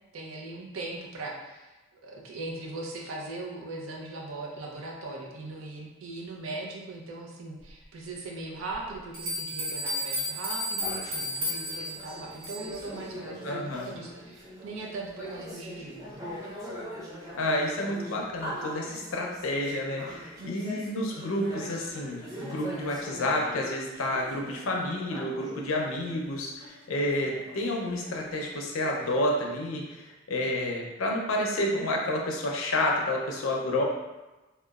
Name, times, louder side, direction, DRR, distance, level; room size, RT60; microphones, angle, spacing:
voice 1, 0.1-1.7 2.0-16.4 20.4-20.9, right 2 dB, 75° right, -1 dB, 0.5 m, -39 dB
sound 1, 8.7-8.8 9.1-12.8, left 1 dB, 45° right, 0.9 m, -33 dB
sound 2, 10.8-25.8 26.3-26.4 26.6-29.3, equal, 15° right, 0.4 m, -42 dB
voice 2, 13.4-14.0 17.3-33.8, left 1 dB, 75° left, -1 dB, 0.5 m, -30 dB
2.9 x 2.1 x 2.3 m, 1.1 s
head